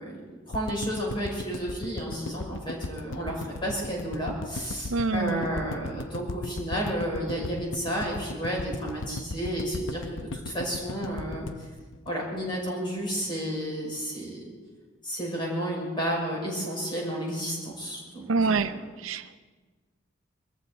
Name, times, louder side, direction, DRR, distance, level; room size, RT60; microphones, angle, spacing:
voice 1, 0.0-11.5 12.0-14.4 15.0-19.0, equal, 25° left, -3 dB, 6.0 m, -32 dB
sound 1, 0.5-12.7 13.0-13.1 13.3-13.4, left 2 dB, 70° left, 0.8 m, -37 dB
voice 2, 4.9-5.5 18.3-18.7 19.0-19.4, right 4 dB, 90° right, 11 dB, 0.7 m, -26 dB
24.0 x 14.5 x 4.1 m, 1.3 s
head